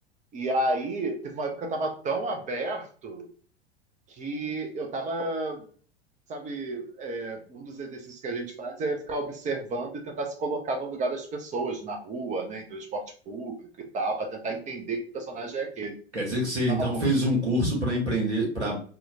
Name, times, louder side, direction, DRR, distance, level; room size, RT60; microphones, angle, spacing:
voice 1, 0.3-3.3 4.2-5.6 6.3-13.7 13.9-15.9 16.7-17.0, right 2 dB, 20° right, 3 dB, 0.6 m, -32 dB
voice 2, 16.1-18.8, equal, 85° right, -2 dB, 1.4 m, -25 dB
3.6 x 2.3 x 2.7 m, 0.43 s
figure-of-eight pair, 90°, 33 cm